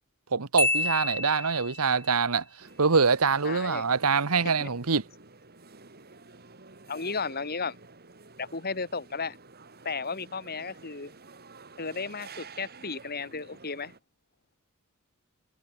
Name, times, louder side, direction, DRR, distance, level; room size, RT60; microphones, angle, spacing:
voice 1, 0.3-2.4 2.8-5.0, right 5 dB, 90° right, 1.3 m, -24 dB
Marimba xylophone, 0.6-2.0, left 3 dB, 10° left, 0.5 m, -29 dB
sound 1, 2.6-14.0, right 4 dB, 45° right, 3.7 m, -51 dB
voice 2, 3.4-3.8 4.6-4.7 6.9-7.8 8.4-9.4 9.8-11.1 11.8-13.9, left 4 dB, 45° left, 2.4 m, -34 dB
head